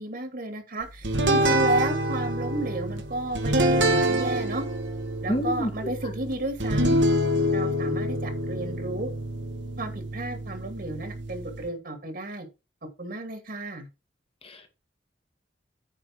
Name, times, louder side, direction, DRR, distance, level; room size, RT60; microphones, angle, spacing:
voice 1, 0.0-4.7 5.2-7.0 7.5-9.1 9.8-12.5 12.8-13.9, right 2 dB, 55° right, 2.3 m, -32 dB
sound 1, 1.0-11.7, right 1 dB, 85° right, 2.3 m, -26 dB
voice 2, 5.3-5.7 14.4-14.7, equal, 30° left, 1.9 m, -28 dB
9.4 x 4.9 x 6.0 m
head